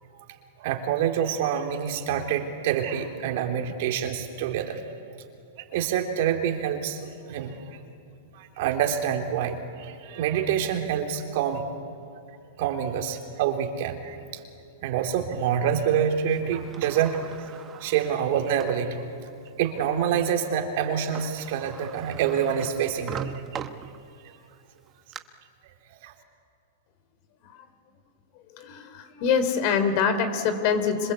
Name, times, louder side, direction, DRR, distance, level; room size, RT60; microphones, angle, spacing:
voice 1, 0.6-4.8 5.6-7.8 8.3-11.7 12.6-14.4 14.8-17.2 17.7-19.0 19.6-23.6 25.6-25.7 26.0-26.1, right 8 dB, 60° right, 3 dB, 3.2 m, -27 dB
Sliding door, 16.3-18.9 19.5-19.6 20.9-21.0 21.1-24.3 24.8-25.2, right 8 dB, 25° right, 1.2 m, -41 dB
voice 2, 28.5-31.1, left 6 dB, 50° left, 10 dB, 3.6 m, -25 dB
26.5 x 26.0 x 8.4 m, 2.7 s
hypercardioid pair, 135°, 0 cm